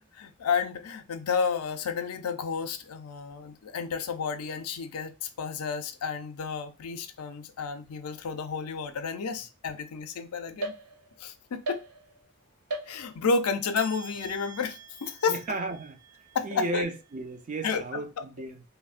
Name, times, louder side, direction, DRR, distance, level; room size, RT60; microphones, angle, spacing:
voice 1, 0.1-10.7 11.2-11.8 12.9-15.4 16.3-16.8 17.6-18.0, left 5 dB, 85° left, 0.4 m, -31 dB
sound 1, 10.6-11.3 11.6-12.3 12.7-13.4 13.7-17.2, right 2 dB, 90° right, 0.6 m, -41 dB
voice 2, 15.3-16.0 16.4-18.6, right 2 dB, 35° right, 0.4 m, -34 dB
3.0 x 2.1 x 2.4 m
head